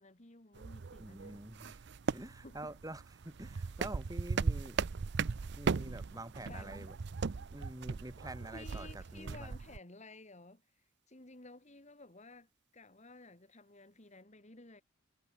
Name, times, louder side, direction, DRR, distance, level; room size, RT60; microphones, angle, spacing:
voice 1, 0.0-1.8 2.0-2.2 2.4-2.7 6.5-6.9 8.5-10.6 11.1-14.8, left 2 dB, 35° left, 2.1 m, -54 dB
sound 1, 0.5-9.8, right 4 dB, 55° right, 0.5 m, -38 dB
voice 2, 1.0-1.8 2.1-4.8 5.5-7.0 7.5-9.6, right 1 dB, 15° right, 1.8 m, -47 dB
head